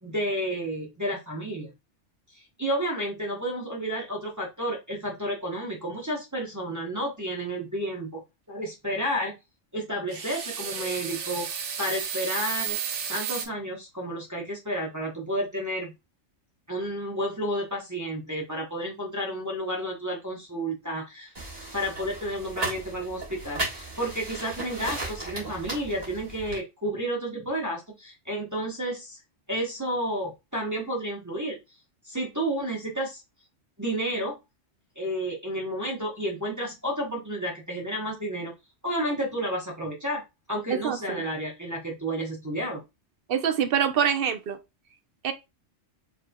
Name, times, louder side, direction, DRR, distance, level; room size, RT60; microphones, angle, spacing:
voice 1, 0.0-1.7 2.3-8.2 8.5-9.3 9.7-12.8 13.1-15.9 16.7-21.3 21.7-29.2 29.5-31.6 32.0-33.2 33.8-34.4 35.0-38.5 38.8-40.2 40.5-42.8, equal, 15° right, 0.9 m, -31 dB
sound 1, 10.1-13.5, right 7 dB, 85° right, 1.0 m, -32 dB
sound 2, 21.3-26.6, right 2 dB, 35° right, 1.5 m, -36 dB
voice 2, 40.8-41.2 43.3-44.6 45.2-45.3, right 8 dB, 60° right, 0.7 m, -25 dB
4.7 x 3.2 x 2.2 m
omnidirectional pair, 1.2 m